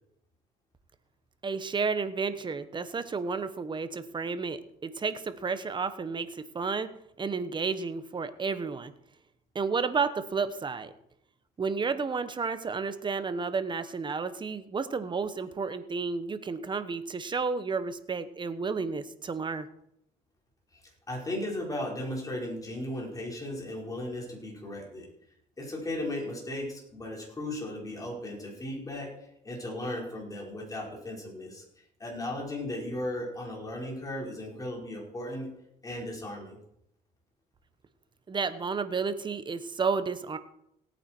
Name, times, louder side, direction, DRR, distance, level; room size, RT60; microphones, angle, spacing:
voice 1, 1.4-6.9 7.2-8.9 9.5-10.9 11.6-19.7 38.3-40.4, right 5 dB, 30° right, 11 dB, 1.1 m, -31 dB
voice 2, 21.1-25.1 25.6-29.1 29.4-31.6 32.0-35.5 35.8-36.6, left 1 dB, 20° left, -2 dB, 4.8 m, -36 dB
18.0 x 8.9 x 4.5 m, 0.77 s
cardioid pair, 110°, 17 cm